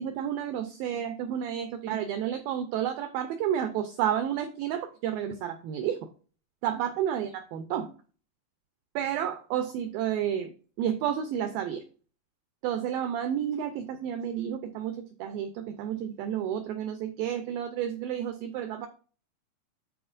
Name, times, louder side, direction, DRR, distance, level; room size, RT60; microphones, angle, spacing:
voice 1, 0.0-6.0 6.6-7.9 9.0-11.8 12.6-18.9, right 9 dB, 90° right, 9 dB, 2.0 m, -31 dB
12.0 x 4.3 x 2.5 m, 0.39 s
omnidirectional pair, 4.9 m